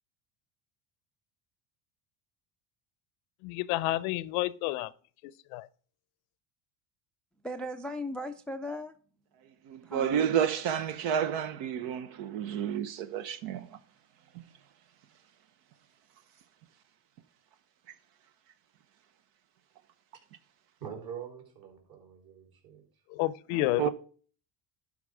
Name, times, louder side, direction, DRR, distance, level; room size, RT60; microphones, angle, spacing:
voice 1, 3.4-4.9 5.5-5.7 23.1-23.9, left 17 dB, 85° left, 0.7 m, -30 dB
voice 2, 7.4-9.0 9.8-10.3, left 1 dB, ahead, 0.3 m, -37 dB
voice 3, 9.6-13.8 23.5-23.9, right 9 dB, 75° right, 1.0 m, -30 dB
voice 4, 20.8-22.8, right 7 dB, 50° right, 3.8 m, -44 dB
11.5 x 4.9 x 4.9 m
cardioid pair, 115°, 46 cm